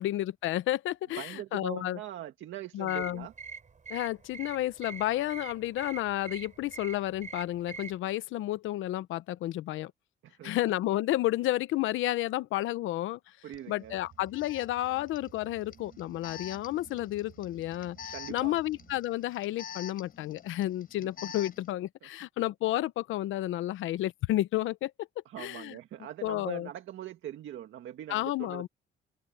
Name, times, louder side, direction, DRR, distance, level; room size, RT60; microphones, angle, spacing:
voice 1, 0.0-2.0 2.7-3.3 3.9-9.9 10.4-13.2 13.7-25.1 25.4-25.8 26.2-26.7 28.1-28.7, left 15 dB, 85° left, 0.9 m, -31 dB
voice 2, 1.2-3.3 10.2-10.5 13.4-14.0 18.1-18.6 21.0-21.1 25.3-28.7, right 12 dB, 75° right, 1.8 m, -42 dB
sound 1, 2.9-8.0, right 5 dB, 40° right, 7.2 m, -45 dB
Alarm, 13.5-13.6 14.3-21.7, left 8 dB, 45° left, 3.9 m, -47 dB
sound 2, 13.8-19.0, right 8 dB, 60° right, 5.2 m, -56 dB
open air
cardioid pair, 90°, 20 cm